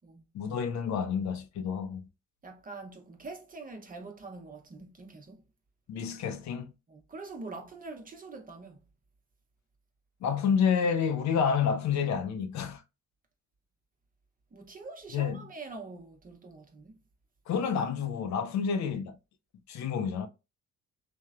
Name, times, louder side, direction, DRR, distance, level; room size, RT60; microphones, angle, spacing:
voice 1, 0.3-2.0 5.9-6.7 10.2-12.8 15.1-15.4 17.5-19.2 19.7-20.3, left 6 dB, 70° left, 0.5 m, -29 dB
voice 2, 2.4-5.4 6.9-8.8 14.5-17.0, right 3 dB, 30° right, 0.7 m, -44 dB
3.0 x 2.1 x 2.4 m
cardioid pair, 90°, 30 cm